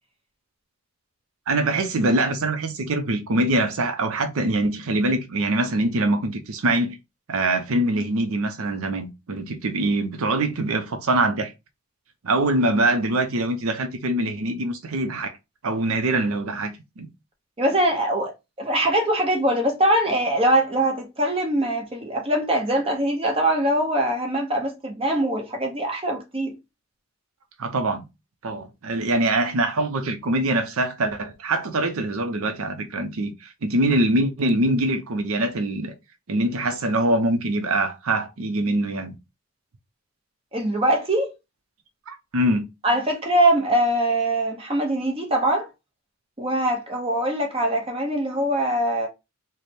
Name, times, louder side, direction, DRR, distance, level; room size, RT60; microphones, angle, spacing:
voice 1, 1.5-7.0 7.3-11.5 12.2-15.4 15.6-17.1 27.6-28.0 28.4-35.9 36.3-39.2 42.1-42.6, right 1 dB, 70° right, 0.6 m, -23 dB
voice 2, 17.6-18.3 18.6-26.5 40.5-41.3 42.8-45.7 46.4-49.1, right 1 dB, 25° right, 0.7 m, -22 dB
3.3 x 2.1 x 4.1 m
head